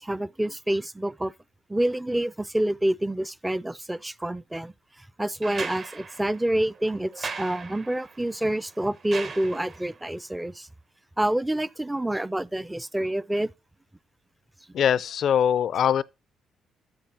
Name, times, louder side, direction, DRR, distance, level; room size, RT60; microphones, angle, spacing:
voice 1, 0.0-1.3 1.7-4.7 5.2-10.7 11.2-13.5, right 1 dB, 10° right, 0.4 m, -27 dB
sound 1, 5.4-10.0 11.6-11.7, right 4 dB, 45° right, 1.1 m, -38 dB
voice 2, 14.7-16.0, left 9 dB, 65° left, 0.4 m, -22 dB
8.8 x 5.7 x 5.3 m
cardioid pair, 90°, 0 cm